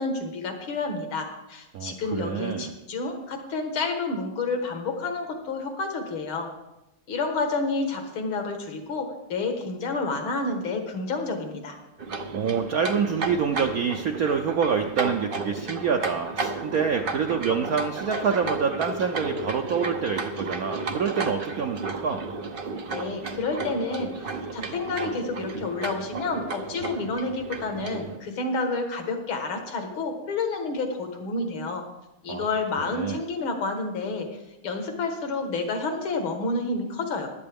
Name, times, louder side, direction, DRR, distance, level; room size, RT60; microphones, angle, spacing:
voice 1, 0.0-6.5 7.1-11.8 22.9-31.8 32.2-34.3 34.6-37.3, left 3 dB, 80° left, 5 dB, 2.4 m, -29 dB
voice 2, 1.7-2.7 12.3-22.3 32.3-32.4 32.8-33.2, right 6 dB, 70° right, 4 dB, 0.8 m, -27 dB
sound 1, 12.0-28.2, right 3 dB, 90° right, 0.4 m, -33 dB
15.5 x 11.0 x 3.5 m, 0.94 s
omnidirectional pair, 2.3 m